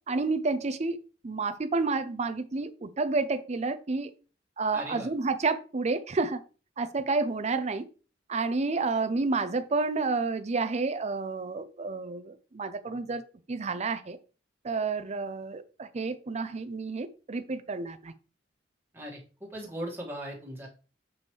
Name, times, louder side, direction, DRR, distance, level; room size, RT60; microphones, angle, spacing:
voice 1, 0.1-1.0 1.2-4.1 4.6-6.4 6.8-7.9 8.3-13.2 13.5-14.2 14.6-18.1, right 3 dB, 35° right, 0.5 m, -30 dB
voice 2, 4.7-5.1 18.9-20.7, right 1 dB, 10° right, 1.8 m, -38 dB
7.0 x 5.3 x 3.2 m
head